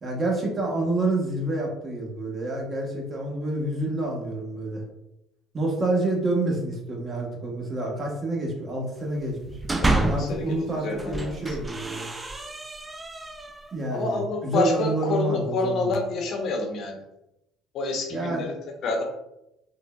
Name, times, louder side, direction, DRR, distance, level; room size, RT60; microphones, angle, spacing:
voice 1, 0.0-4.8 5.5-9.6 10.1-12.1 13.7-15.9 18.1-18.4, right 2 dB, 35° right, -1 dB, 1.0 m, -28 dB
sound 1, 9.3-10.4 10.9-13.7, right 2 dB, 20° right, 0.3 m, -28 dB
voice 2, 9.8-11.6 13.9-17.0 17.7-18.5 18.8-19.0, left 3 dB, 60° left, 2 dB, 0.6 m, -28 dB
3.6 x 2.1 x 2.2 m, 0.85 s
supercardioid pair, 70°, 0 cm